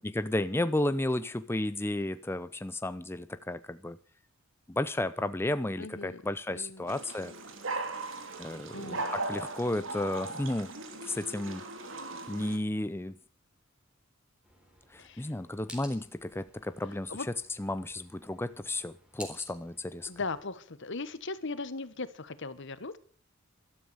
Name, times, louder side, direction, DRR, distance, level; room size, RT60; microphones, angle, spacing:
voice 1, 0.0-4.0 4.7-7.3 8.4-10.7 11.1-11.6 12.3-13.2 14.9-17.1 17.6-20.1, left 1 dB, 10° left, 12 dB, 0.6 m, -33 dB
voice 2, 5.8-6.2 6.5-6.8 8.7-9.1 15.0-15.3 17.1-17.3 20.1-23.0, left 3 dB, 65° left, 14 dB, 1.3 m, -38 dB
sound 1, 6.9-12.6, right 2 dB, 70° right, 2.7 m, -38 dB
sound 2, 14.4-20.5, equal, 5° right, 3.9 m, -53 dB
13.5 x 13.0 x 6.9 m, 0.42 s
head